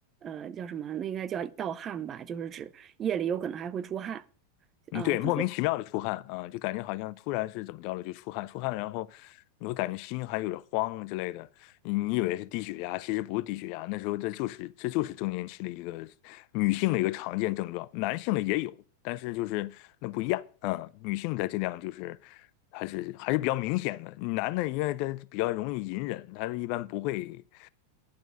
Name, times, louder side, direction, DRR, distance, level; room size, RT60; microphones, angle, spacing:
voice 1, 0.2-4.2 4.9-5.2, right 8 dB, 25° right, 0.7 m, -34 dB
voice 2, 4.9-18.8 19.0-22.5 22.7-27.7, left 18 dB, 45° left, 0.4 m, -32 dB
11.5 x 6.1 x 6.3 m
figure-of-eight pair, 90°, 0 cm